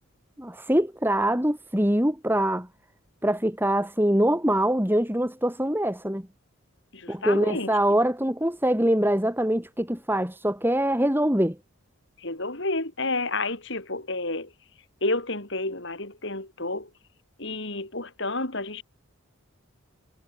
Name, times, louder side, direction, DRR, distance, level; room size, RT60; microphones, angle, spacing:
voice 1, 0.4-2.7 3.2-6.3 7.1-11.6, right 1 dB, 10° right, 3.8 m, -24 dB
voice 2, 6.9-7.7 12.2-14.5 15.0-16.9 17.4-18.8, left 2 dB, 60° left, 5.6 m, -30 dB
head